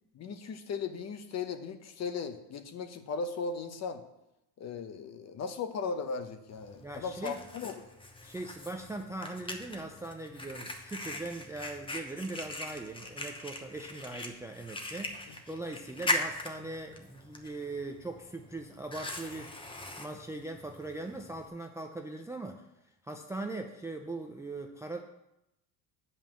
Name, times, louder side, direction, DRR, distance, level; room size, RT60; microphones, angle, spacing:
voice 1, 0.1-4.0 4.6-7.8 15.3-15.4, left 5 dB, 40° left, 9 dB, 0.9 m, -37 dB
Fire, 6.5-21.5, left 2 dB, 10° left, 0.9 m, -40 dB
voice 2, 6.8-7.4 8.2-22.6 23.0-25.0, right 2 dB, 5° right, 3 dB, 0.4 m, -40 dB
8.8 x 5.6 x 7.4 m, 0.87 s
cardioid pair, 145°, 42 cm